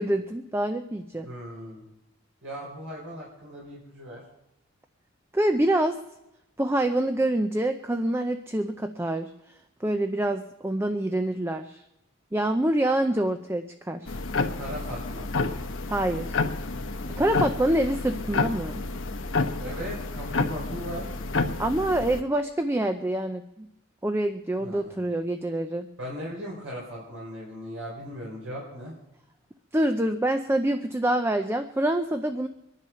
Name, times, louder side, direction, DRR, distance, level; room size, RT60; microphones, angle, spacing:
voice 1, 0.0-1.3 5.3-6.0 6.6-9.3 9.8-11.8 12.3-14.2 15.9-16.4 17.2-18.8 21.6-23.7 24.0-25.8 29.7-32.5, right 1 dB, 10° right, 7 dB, 0.5 m, -26 dB
voice 2, 1.2-1.8 2.4-4.2 14.6-15.3 19.6-21.1 24.6-25.0 26.0-28.9, equal, 85° right, -3 dB, 4.1 m, -38 dB
sound 1, 14.1-22.2, left 3 dB, 70° left, 1.1 m, -30 dB
23.5 x 10.5 x 5.7 m, 0.93 s
head